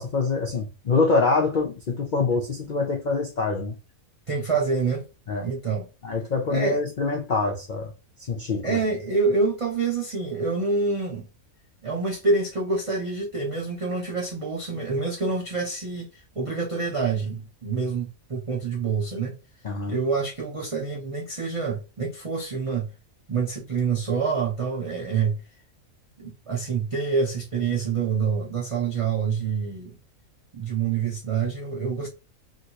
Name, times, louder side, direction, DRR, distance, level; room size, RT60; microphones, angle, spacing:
voice 1, 0.0-3.8 5.3-5.5 6.0-7.9 8.3-8.8 19.6-20.0, left 4 dB, 65° left, 0.4 m, -25 dB
voice 2, 4.3-5.0 5.4-5.9 6.5-6.8 8.6-11.3 11.8-16.1 16.4-19.3 19.9-22.9 23.3-25.4 26.2-30.0 30.5-32.1, right 4 dB, 40° right, 0.4 m, -26 dB
2.9 x 2.8 x 2.8 m
omnidirectional pair, 1.5 m